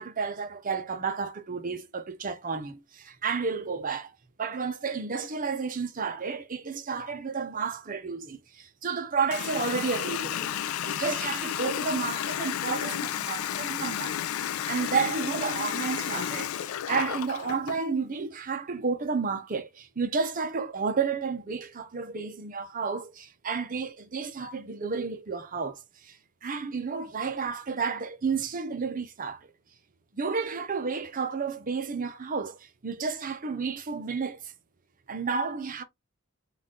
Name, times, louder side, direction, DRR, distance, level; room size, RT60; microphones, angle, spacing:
voice 1, 0.0-4.1 4.4-10.5 10.8-29.5 30.1-34.5 35.1-35.8, right 5 dB, 40° right, 0.7 m, -31 dB
Water tap faucet, 9.3-17.8, left 10 dB, 80° left, 0.4 m, -32 dB
4.0 x 2.4 x 3.7 m
head